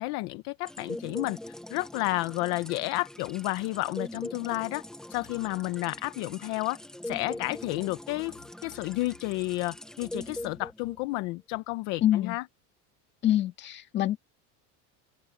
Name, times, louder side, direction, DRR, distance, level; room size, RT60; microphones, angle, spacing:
voice 1, 0.0-1.4 1.7-4.8 5.1-6.8 7.0-12.4, left 21 dB, 50° left, 0.7 m, -31 dB
sound 1, 0.7-11.2, left 1 dB, ahead, 0.8 m, -42 dB
voice 2, 12.0-12.4 13.2-14.2, left 12 dB, 30° left, 1.9 m, -25 dB
open air
cardioid pair, 180°, 37 cm